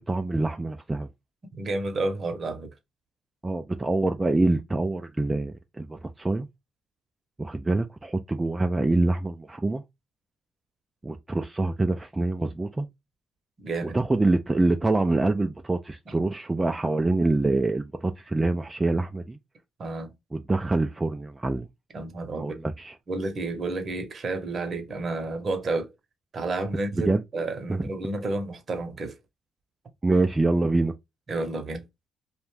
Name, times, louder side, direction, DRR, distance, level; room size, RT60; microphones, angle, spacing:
voice 1, 0.1-1.1 3.4-6.5 7.4-9.8 11.0-12.9 13.8-19.4 20.3-21.7 22.4-23.0 27.0-27.2 27.7-27.8 30.0-30.9, right 2 dB, 20° right, 0.3 m, -25 dB
voice 2, 1.5-2.7 13.6-14.0 19.8-20.1 21.9-22.6 23.1-25.9 26.3-29.1 31.3-31.8, right 2 dB, 45° right, 0.8 m, -30 dB
2.5 x 2.2 x 3.1 m
cardioid pair, 90°, 0 cm